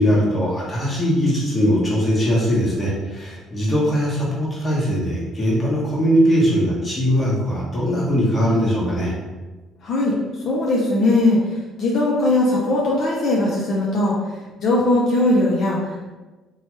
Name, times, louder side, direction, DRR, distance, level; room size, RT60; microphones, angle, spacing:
voice 1, 0.0-9.1, equal, 20° left, -6 dB, 1.1 m, -20 dB
voice 2, 9.8-11.4 11.8-14.2 14.6-16.1, left 2 dB, 55° left, -4 dB, 0.5 m, -19 dB
2.8 x 2.3 x 3.0 m, 1.2 s
cardioid pair, 110°, 0 cm